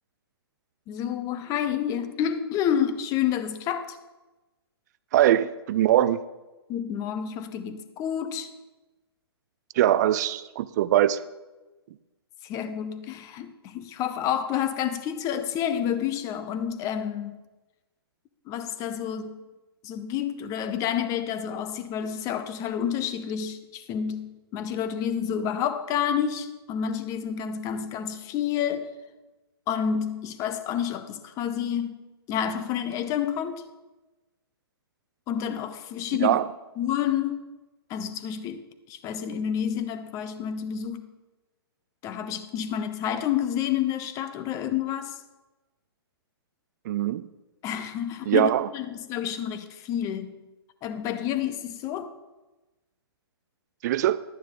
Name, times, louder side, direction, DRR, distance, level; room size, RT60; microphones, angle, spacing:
voice 1, 0.9-4.0 6.7-8.5 12.4-17.4 18.5-19.4 19.8-28.9 29.7-32.0 32.3-33.7 35.3-36.4 36.8-37.5 37.9-41.1 42.0-45.2 47.6-50.3 50.8-52.1, left 9 dB, 25° left, 11 dB, 0.7 m, -29 dB
voice 2, 5.1-6.2 9.8-11.2 36.2-36.5 46.9-47.2 48.3-48.7 53.8-54.2, right 12 dB, 40° right, 16 dB, 0.4 m, -22 dB
11.5 x 10.0 x 3.8 m, 1.1 s
hypercardioid pair, 135°, 14 cm